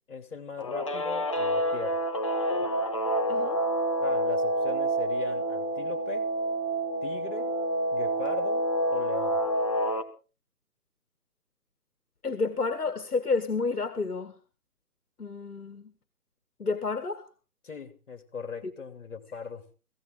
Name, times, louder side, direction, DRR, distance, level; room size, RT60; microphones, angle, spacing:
voice 1, 0.1-2.1 4.0-6.3 7.0-7.5 7.9-9.4 17.6-19.7, left 5 dB, 50° left, 9 dB, 2.9 m, -39 dB
Guitar, 0.6-10.0, right 1 dB, 20° left, 0.9 m, -28 dB
voice 2, 3.3-3.6 12.2-14.3 15.2-15.9 16.6-17.3, left 4 dB, 70° left, 10 dB, 2.0 m, -30 dB
17.0 x 16.5 x 3.8 m, 0.34 s
figure-of-eight pair, 145°, 47 cm